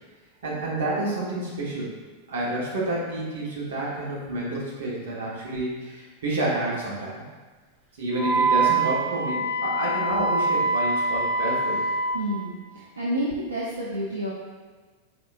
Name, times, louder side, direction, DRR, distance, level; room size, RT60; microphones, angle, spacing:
voice 1, 0.4-1.9 2.3-7.2 8.0-11.9, right 1 dB, 60° right, -5 dB, 1.3 m, -29 dB
Wind instrument woodwind instrument, 8.1-12.2, right 3 dB, 15° right, 1.5 m, -24 dB
voice 2, 12.1-14.3, equal, 75° right, -6 dB, 0.6 m, -29 dB
5.0 x 3.5 x 2.6 m, 1.4 s
figure-of-eight pair, 90°, 0 cm